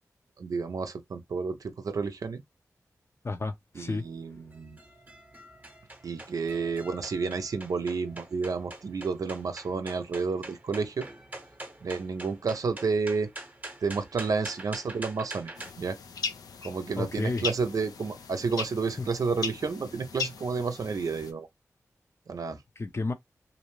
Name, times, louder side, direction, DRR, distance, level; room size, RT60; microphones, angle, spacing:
voice 1, 0.4-2.4 3.7-4.8 6.0-11.1 11.8-13.3 13.8-16.0 16.6-21.5 22.3-22.6, right 4 dB, 70° right, 0.5 m, -31 dB
voice 2, 3.2-4.0 17.0-17.5 19.0-19.1 22.8-23.1, left 3 dB, 45° left, 0.6 m, -31 dB
sound 1, 4.0-15.7, right 2 dB, 25° right, 0.9 m, -45 dB
sound 2, 15.5-21.3, left 5 dB, 90° left, 0.4 m, -38 dB
2.6 x 2.1 x 3.0 m
cardioid pair, 50°, 6 cm